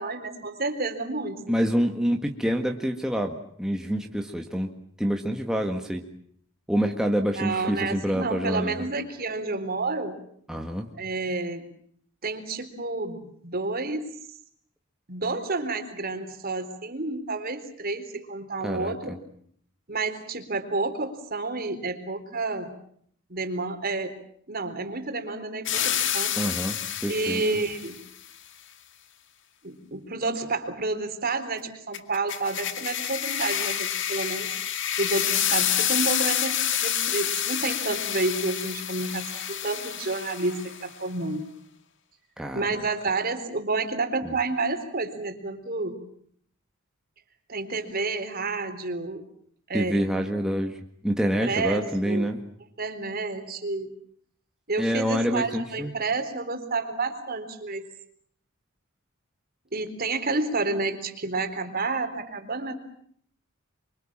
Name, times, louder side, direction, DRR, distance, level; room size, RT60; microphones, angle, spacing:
voice 1, 0.0-1.6 7.3-10.2 11.0-11.7 12.2-14.1 15.1-19.1 19.9-22.8 23.3-24.1 24.5-26.4 27.1-28.0 29.6-34.5 35.0-41.5 42.5-46.0 47.5-49.2 49.7-50.0 51.4-52.3 52.8-53.9 54.7-57.9 59.7-62.8, right 3 dB, 45° right, 6 dB, 4.0 m, -30 dB
voice 2, 1.5-4.7 5.0-6.1 6.7-8.9 10.5-10.9 18.6-19.2 26.4-27.4 42.4-42.9 44.2-44.4 49.7-52.4 54.8-55.9, equal, 5° right, 2 dB, 1.8 m, -27 dB
sound 1, 25.7-28.0 31.9-40.9, left 10 dB, 60° left, 2.3 m, -28 dB
27.5 x 24.5 x 7.4 m, 0.64 s
head